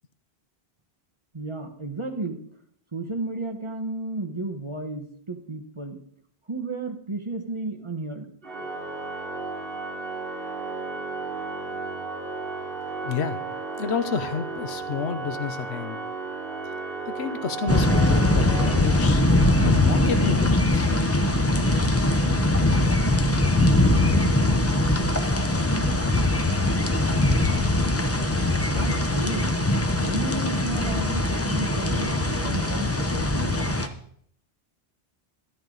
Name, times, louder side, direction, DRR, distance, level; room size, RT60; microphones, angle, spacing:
voice 1, 1.3-2.4 2.9-6.0 6.5-8.3 16.9-17.1 28.7-29.6 30.0-33.8, right 2 dB, 25° right, 3 dB, 1.2 m, -33 dB
Organ, 8.4-19.4, right 3 dB, 55° right, 2.9 m, -34 dB
voice 2, 13.0-13.4 13.8-16.0 17.1-19.2 19.6-20.9, left 6 dB, 75° left, 11 dB, 1.0 m, -29 dB
sound 1, 17.7-33.9, left 1 dB, 15° left, 0.6 m, -22 dB
12.5 x 11.0 x 3.9 m, 0.65 s
omnidirectional pair, 1.1 m